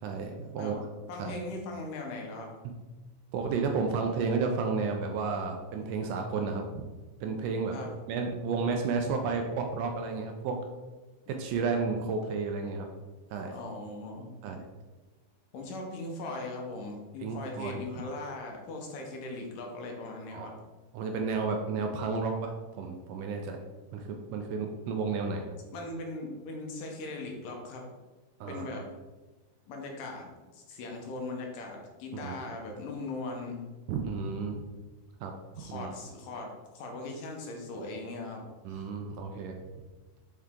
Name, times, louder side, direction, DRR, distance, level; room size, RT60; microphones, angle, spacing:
voice 1, 0.0-0.8 1.2-1.4 2.6-2.7 3.3-6.8 7.2-7.8 8.1-10.6 11.3-12.9 13.3-13.5 14.4-14.7 17.2-17.8 20.3-20.5 20.9-23.6 23.9-25.5 28.4-28.8 32.2-32.5 33.9-34.6 35.2-35.3 35.7-35.9 38.7-39.6, right 4 dB, 80° right, 3 dB, 2.0 m, -32 dB
voice 2, 1.1-2.5 7.7-7.9 13.5-14.3 15.5-20.5 25.7-27.8 28.5-28.9 29.7-33.7 35.6-38.4 38.7-38.9, left 2 dB, 75° left, 1 dB, 2.4 m, -39 dB
6.6 x 4.6 x 3.7 m, 1.2 s
omnidirectional pair, 4.0 m